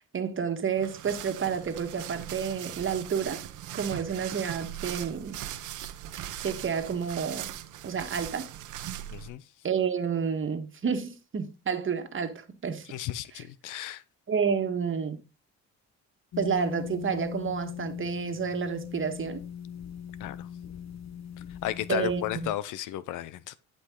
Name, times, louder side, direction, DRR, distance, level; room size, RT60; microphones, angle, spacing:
voice 1, 0.1-3.5 3.7-5.4 6.4-7.6 7.8-8.5 9.6-12.9 13.3-13.4 14.3-15.2 16.4-19.4 21.9-22.5, right 6 dB, 40° right, 1.6 m, -30 dB
sound 1, 0.8-9.3, right 12 dB, 80° right, 0.9 m, -40 dB
voice 2, 9.1-9.4 12.9-14.0 20.2-20.5 21.6-23.6, left 13 dB, 90° left, 0.7 m, -34 dB
sound 2, 16.3-22.5, left 8 dB, 60° left, 1.1 m, -39 dB
11.5 x 5.3 x 3.8 m
cardioid pair, 90°, 30 cm